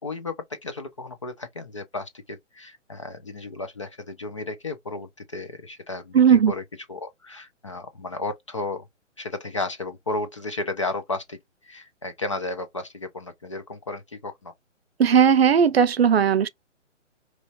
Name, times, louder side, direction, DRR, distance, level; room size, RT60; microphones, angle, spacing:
voice 1, 0.0-0.3 0.6-6.6 6.9-8.8 9.2-11.4 11.6-14.5, left 2 dB, 25° left, 0.4 m, -33 dB
voice 2, 6.1-6.5 15.0-16.5, right 7 dB, 55° right, 0.6 m, -17 dB
5.0 x 3.0 x 2.5 m
figure-of-eight pair, 140°, 38 cm